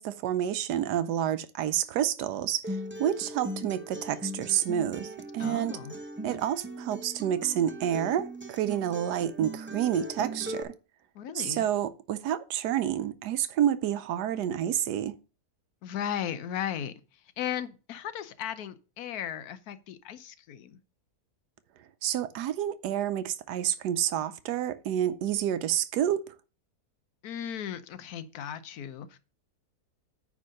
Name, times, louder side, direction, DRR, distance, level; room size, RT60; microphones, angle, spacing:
voice 1, 0.0-5.8 6.2-10.7 11.3-15.2 22.0-26.2, right 10 dB, 90° right, 1.2 m, -29 dB
Acoustic guitar, 2.6-10.6, right 1 dB, 15° right, 0.4 m, -39 dB
voice 2, 5.4-5.9 11.1-11.6 15.8-16.9 17.4-20.8 27.2-29.2, left 9 dB, 70° left, 1.2 m, -36 dB
9.5 x 3.6 x 6.4 m
omnidirectional pair, 1.7 m